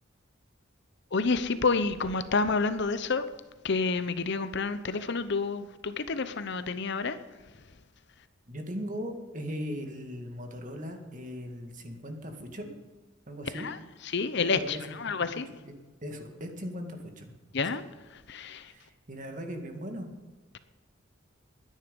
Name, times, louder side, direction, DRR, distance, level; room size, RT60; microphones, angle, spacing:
voice 1, 1.1-3.3 3.6-7.2 13.5-13.8 14.0-15.5 17.5-17.8 18.1-18.7, left 4 dB, 55° left, 0.8 m, -29 dB
voice 2, 8.5-12.7 13.3-13.7 14.4-15.1 15.6-15.7 16.0-17.3 18.7-20.1, equal, 40° right, 2.1 m, -39 dB
21.0 x 10.0 x 5.4 m
head